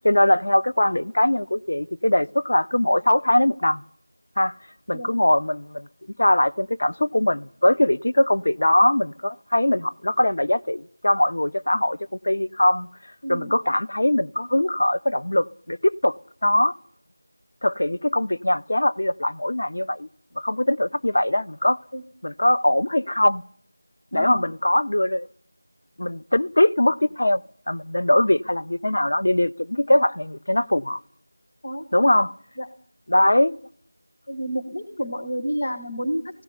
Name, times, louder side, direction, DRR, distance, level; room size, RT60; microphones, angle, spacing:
voice 1, 0.0-3.8 4.4-4.5 4.9-5.9 6.2-12.0 12.2-12.9 13.3-16.2 16.4-16.7 17.6-20.1 20.4-21.8 22.2-23.4 24.1-25.3 26.0-27.4 27.7-31.0 31.9-32.3 33.1-33.6, left 1 dB, 65° left, 0.8 m, -21 dB
voice 2, 13.2-13.5 21.9-22.0 24.1-24.4 31.6-31.8 32.1-32.2 32.6-32.7 34.3-36.4, equal, 45° left, 1.7 m, -30 dB
17.5 x 16.0 x 9.6 m
figure-of-eight pair, 175°, 0 cm